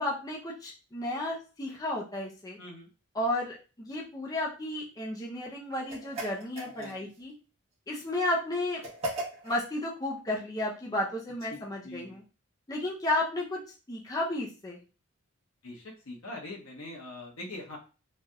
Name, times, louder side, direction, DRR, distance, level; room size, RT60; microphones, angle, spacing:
voice 1, 0.0-2.6 3.1-7.3 7.9-8.8 9.4-12.2 12.7-13.6 13.9-14.8, left 1 dB, 15° left, -3 dB, 0.5 m, -33 dB
voice 2, 2.6-2.9 6.8-7.1 11.5-12.2 15.6-17.8, left 2 dB, 80° left, -1 dB, 1.0 m, -43 dB
sound 1, 5.9-7.2 8.8-9.7, right 1 dB, 30° right, 1.1 m, -37 dB
3.3 x 2.6 x 2.3 m, 0.33 s
head